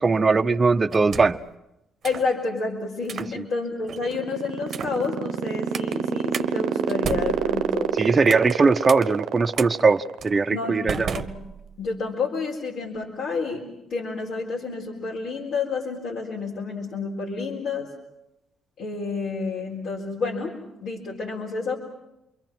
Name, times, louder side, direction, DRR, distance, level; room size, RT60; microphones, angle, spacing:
voice 1, 0.0-1.4 3.3-3.4 8.0-11.1, right 4 dB, 30° right, 8 dB, 0.8 m, -20 dB
sound 1, 0.9-1.5 2.0-2.3 3.0-3.3 3.9-4.2 4.7-5.0 5.7-6.0 6.3-6.5 6.9-8.6 8.9-9.0 9.6-9.7 10.2-10.4 10.9-11.9, right 7 dB, 55° right, 1.0 m, -34 dB
voice 2, 2.0-8.0 10.5-11.4 11.8-17.9 18.8-21.8, left 4 dB, 75° left, -4 dB, 4.0 m, -30 dB
sound 2, 3.8-10.4, right 10 dB, 90° right, 0.8 m, -26 dB
28.0 x 22.5 x 6.1 m, 0.88 s
cardioid pair, 90°, 0 cm